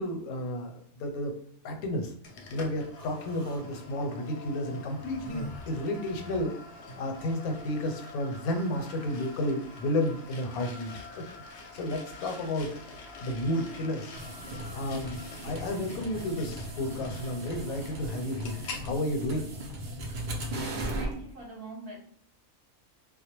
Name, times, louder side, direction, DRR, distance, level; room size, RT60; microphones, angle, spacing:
voice 1, 0.0-1.3 1.6-2.1 2.5-6.5 7.0-10.9 11.5-12.7 13.2-14.1 14.7-15.2 15.4-19.5, left 1 dB, 90° left, 4 dB, 1.0 m, -32 dB
sound 1, 2.2-18.9, left 3 dB, 65° left, 0.8 m, -46 dB
Human voice, 2.9-3.6 4.5-6.5, left 1 dB, 35° left, 0.4 m, -43 dB
sound 2, 14.2-21.1, right 1 dB, 90° right, 0.4 m, -37 dB
voice 2, 20.4-22.0, right 2 dB, 50° right, -3 dB, 0.8 m, -44 dB
2.2 x 2.2 x 2.8 m, 0.62 s
omnidirectional pair, 1.5 m